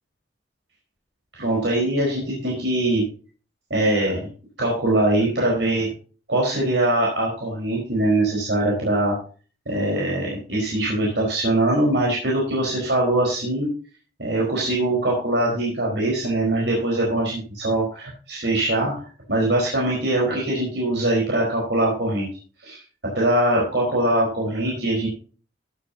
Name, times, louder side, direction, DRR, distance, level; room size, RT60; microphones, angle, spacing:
voice 1, 1.3-3.0 3.7-4.3 4.6-5.9 6.3-9.2 9.7-13.7 14.2-22.3 22.6-22.8 23.1-25.1, right 1 dB, 80° right, -3 dB, 4.5 m, -22 dB
15.0 x 10.0 x 2.8 m, 0.38 s
head